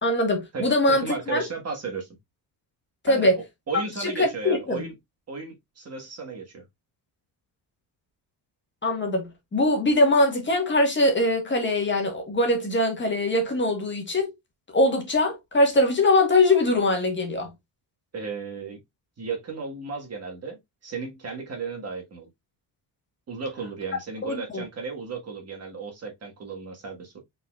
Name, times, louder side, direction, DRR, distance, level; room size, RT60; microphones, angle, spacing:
voice 1, 0.0-1.4 3.0-3.4 4.0-4.8 8.8-14.3 14.7-17.5 24.2-24.6, left 1 dB, 25° left, 1.5 m, -22 dB
voice 2, 0.5-2.1 3.1-4.9 5.3-6.6 18.1-18.8 19.2-22.3 23.3-27.2, right 5 dB, 35° right, 1.6 m, -34 dB
5.4 x 4.0 x 2.4 m
cardioid pair, 145°, 41 cm